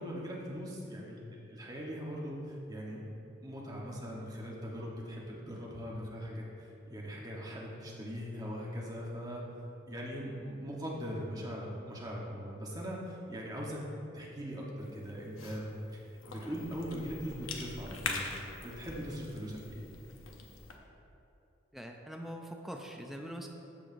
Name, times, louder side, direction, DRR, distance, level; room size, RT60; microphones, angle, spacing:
voice 1, 0.0-3.0 3.4-9.4 9.9-13.8 14.1-15.8 16.3-18.4 18.6-19.8, equal, 20° right, -4 dB, 1.1 m, -40 dB
Cough / Chewing mastication, 14.8-20.8, left 4 dB, 90° left, 0.8 m, -43 dB
voice 2, 21.7-23.5, equal, ahead, 1 dB, 0.4 m, -43 dB
14.0 x 4.8 x 2.6 m, 3.0 s
head